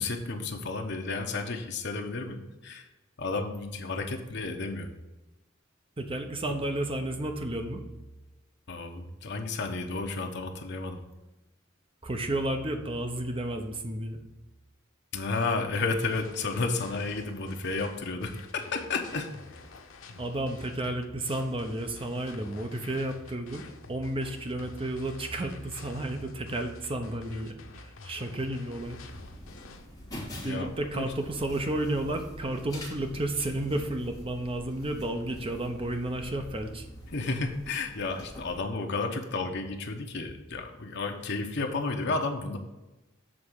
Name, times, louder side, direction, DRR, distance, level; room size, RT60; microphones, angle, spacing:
voice 1, 0.0-2.9 3.2-4.9 8.7-11.0 15.1-19.4 30.3-31.1 37.1-42.6, left 3 dB, 60° left, 3 dB, 0.9 m, -32 dB
voice 2, 6.0-7.8 12.0-14.2 20.2-29.0 30.4-36.9, right 1 dB, 25° right, 5 dB, 0.8 m, -32 dB
sound 1, 16.0-29.9, left 3 dB, 85° left, 0.8 m, -49 dB
sound 2, 28.8-38.6, left 1 dB, 20° left, 1.7 m, -46 dB
7.5 x 3.6 x 6.5 m, 1.1 s
head